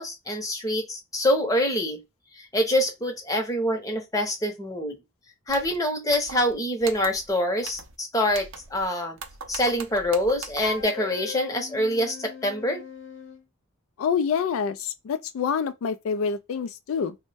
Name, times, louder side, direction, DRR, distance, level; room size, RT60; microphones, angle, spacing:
voice 1, 0.0-2.0 2.4-4.9 5.5-9.2 9.5-12.8, left 1 dB, 15° left, 0.7 m, -25 dB
sound 1, 5.5-5.8 6.1-6.5 6.8-7.3 7.6-8.0 8.3-8.9 9.2-10.8, right 5 dB, 60° right, 0.5 m, -41 dB
Wind instrument woodwind instrument, 10.6-13.4, left 4 dB, 60° left, 0.8 m, -39 dB
voice 2, 14.0-17.2, left 6 dB, 75° left, 0.3 m, -27 dB
3.0 x 2.1 x 3.2 m
head